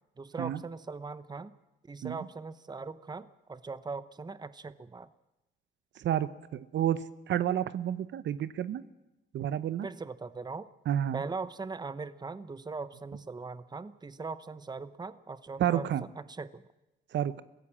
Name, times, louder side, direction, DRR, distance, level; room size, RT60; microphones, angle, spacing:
voice 1, 0.2-1.5 1.8-5.1 9.8-10.7 11.1-15.9 16.3-16.6, right 4 dB, 20° right, 15 dB, 0.9 m, -40 dB
voice 2, 6.0-8.8 9.3-9.9 10.9-11.2 15.6-16.0 17.1-17.4, right 11 dB, 65° right, 15 dB, 0.9 m, -30 dB
23.0 x 16.5 x 7.5 m, 0.99 s
cardioid pair, 90°, 20 cm